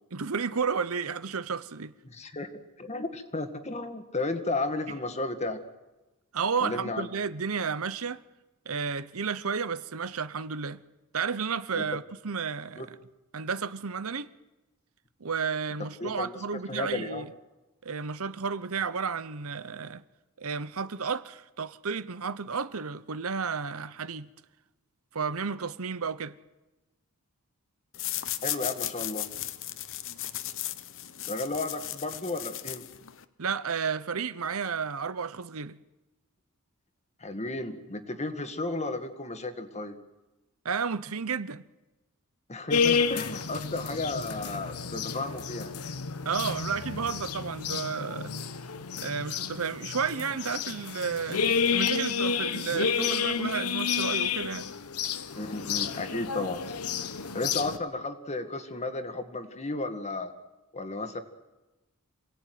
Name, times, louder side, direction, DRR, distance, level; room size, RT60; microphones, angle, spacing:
voice 1, 0.1-1.9 6.3-8.2 8.7-10.8 11.1-13.0 13.3-14.3 15.2-17.3 17.8-20.0 20.4-24.3 25.1-26.3 33.4-35.8 40.6-41.6 46.2-48.3 49.0-51.4 51.7-54.7, right 5 dB, 70° right, 0.9 m, -32 dB
voice 2, 2.0-2.5 2.8-5.6 6.6-7.1 11.8-11.9 12.8-12.9 16.0-17.3 28.4-29.3 31.3-32.8 37.2-40.0 42.5-45.7 55.4-56.6 57.3-60.3 60.7-61.2, left 2 dB, 30° left, 1.9 m, -33 dB
sound 1, 27.9-33.2, left 13 dB, 60° left, 1.0 m, -36 dB
sound 2, 42.7-57.8, left 6 dB, 85° left, 1.2 m, -30 dB
27.5 x 18.0 x 9.4 m
head